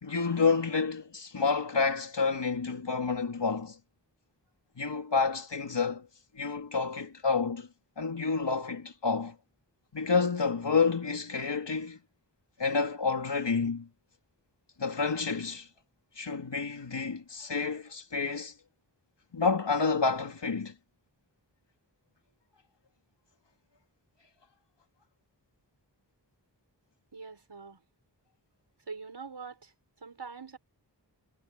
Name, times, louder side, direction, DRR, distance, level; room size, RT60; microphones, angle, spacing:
voice 1, 0.0-3.8 4.8-6.1 6.3-7.7 8.0-9.3 9.9-12.0 12.6-13.9 14.8-15.7 16.2-18.5 19.3-20.7, left 4 dB, 85° left, 3.3 m, -29 dB
voice 2, 27.1-27.8 28.9-29.7 30.0-30.6, right 5 dB, 75° right, 5.7 m, -43 dB
wide cardioid pair, 50°, 41 cm